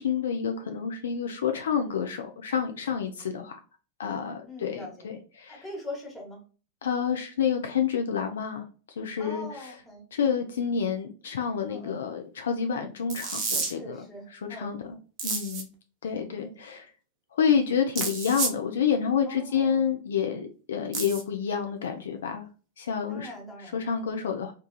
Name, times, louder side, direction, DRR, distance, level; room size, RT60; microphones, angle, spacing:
voice 1, 0.0-3.6 4.0-5.6 6.8-8.6 9.0-9.7 10.1-14.0 14.5-14.8 15.2-15.7 16.0-16.9 17.3-22.5 22.8-23.3 23.7-24.5, left 7 dB, 65° left, 5 dB, 0.3 m, -28 dB
voice 2, 4.5-5.1 5.5-6.4 9.2-10.1 11.7-12.0 13.6-14.7 16.3-16.6 18.0-18.1 19.2-19.9 23.1-23.8, left 1 dB, 5° left, -2 dB, 1.3 m, -42 dB
sound 1, 13.1-13.7 15.2-15.6 18.0-18.6 20.9-21.2, right 4 dB, 40° right, 0.7 m, -30 dB
2.9 x 2.3 x 2.2 m, 0.37 s
figure-of-eight pair, 90°, 0 cm